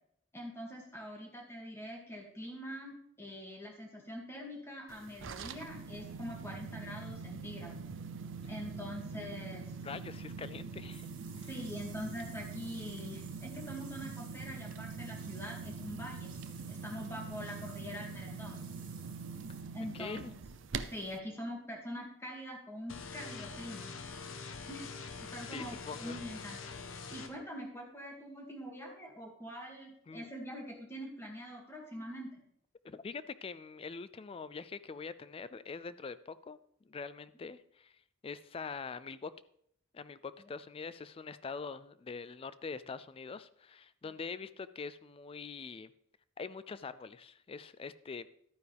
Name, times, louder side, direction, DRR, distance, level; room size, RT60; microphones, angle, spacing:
voice 1, 0.3-7.8 8.5-9.7 11.4-16.4 16.7-18.6 19.7-20.4 20.9-23.9 24.7-24.9 25.3-26.6 27.1-32.3 44.0-44.1, equal, 10° left, -1 dB, 2.3 m, -44 dB
sound 1, 4.9-21.2, right 5 dB, 65° right, 0.6 m, -44 dB
voice 2, 9.8-11.1 11.4-11.5 19.9-20.3 25.5-26.2 30.1-30.3 32.8-36.6 36.8-39.3 39.9-45.9 46.4-48.3, left 5 dB, 30° left, 16 dB, 0.3 m, -44 dB
sound 2, 10.9-19.6, right 7 dB, 45° right, 2.7 m, -57 dB
sound 3, 22.9-27.3, left 4 dB, 75° left, 1.0 m, -44 dB
12.0 x 9.3 x 3.5 m, 0.69 s
head